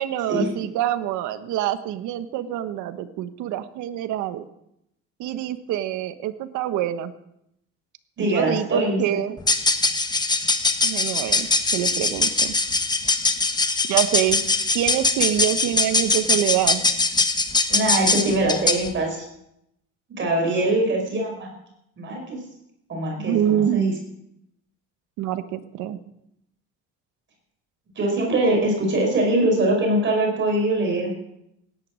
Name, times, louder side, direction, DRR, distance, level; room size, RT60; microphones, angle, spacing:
voice 1, 0.0-4.5 5.2-7.1 8.2-9.4 10.8-11.5 11.7-12.5 13.9-14.4 14.7-16.8 23.2-23.9 25.2-26.0, right 11 dB, 80° right, 11 dB, 1.3 m, -25 dB
voice 2, 8.2-9.0 17.7-19.2 20.2-21.5 22.0-22.4 22.9-23.9 28.0-31.1, right 1 dB, 40° right, 1 dB, 5.2 m, -22 dB
sound 1, 9.4-18.9, left 3 dB, 15° left, 1.2 m, -22 dB
17.0 x 10.5 x 6.4 m, 0.80 s
cardioid pair, 115°, 29 cm